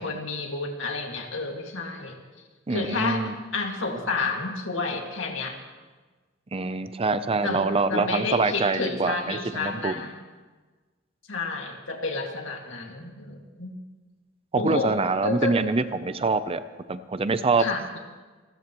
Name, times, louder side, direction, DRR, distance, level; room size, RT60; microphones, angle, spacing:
voice 1, 0.0-2.2 2.7-5.6 7.4-10.1 11.3-13.7 14.5-15.6 17.6-18.0, left 3 dB, 75° left, 2 dB, 2.1 m, -30 dB
voice 2, 2.7-3.3 6.5-9.9 14.5-16.6 16.9-17.7, right 3 dB, 30° right, 12 dB, 0.5 m, -25 dB
28.5 x 13.5 x 3.1 m, 1.3 s
head